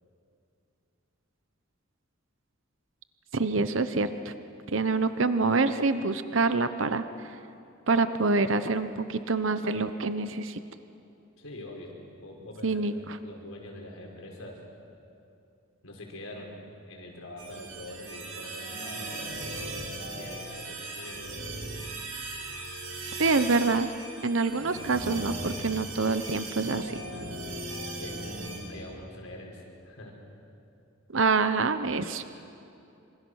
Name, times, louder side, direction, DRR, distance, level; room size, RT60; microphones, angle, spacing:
voice 1, 3.3-4.3 4.7-7.0 7.9-10.6 12.6-13.2 23.2-23.9 24.2-26.9 31.1-32.2, right 3 dB, 65° right, 11 dB, 0.9 m, -26 dB
voice 2, 11.4-14.6 15.8-19.6 20.1-21.2 28.0-28.2 28.7-30.2, left 1 dB, 90° left, 0 dB, 5.3 m, -44 dB
sound 1, 17.4-28.6, right 2 dB, 80° right, 6.6 m, -38 dB
26.5 x 26.5 x 6.4 m, 2.7 s
head